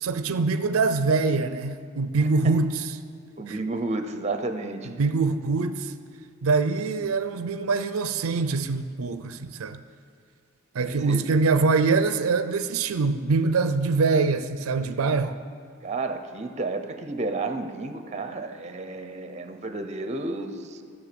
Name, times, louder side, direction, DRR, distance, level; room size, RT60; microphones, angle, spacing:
voice 1, 0.0-2.9 3.5-3.6 4.8-5.9 6.4-9.8 10.7-15.4, right 4 dB, 85° right, 11 dB, 0.5 m, -24 dB
voice 2, 3.4-4.9 10.8-11.2 15.8-20.8, right 2 dB, 30° right, 8 dB, 0.6 m, -31 dB
14.0 x 6.7 x 6.8 m, 2.2 s
head